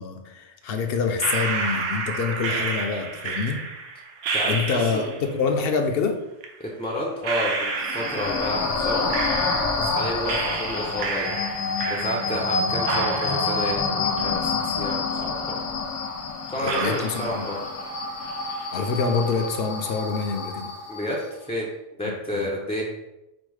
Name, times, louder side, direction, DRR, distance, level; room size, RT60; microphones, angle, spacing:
voice 1, 0.0-3.6 4.5-6.2 16.6-17.5 18.7-20.7 22.0-22.5, left 5 dB, 60° left, 5 dB, 0.7 m, -26 dB
sound 1, 1.2-5.3 6.4-6.5 7.2-9.9 10.3-12.5 12.8-14.9 15.2-15.3 16.0-16.1 16.6-18.0 18.2-18.8, right 4 dB, 80° right, 0.9 m, -30 dB
voice 2, 4.3-5.3 6.6-9.1 9.8-11.4 11.9-15.6 16.5-17.7 20.9-21.7 22.0-22.9, left 1 dB, 10° left, -3 dB, 0.3 m, -30 dB
sound 2, 7.8-21.2, left 3 dB, 90° left, 1.0 m, -28 dB
5.1 x 2.0 x 4.7 m, 0.92 s
omnidirectional pair, 1.2 m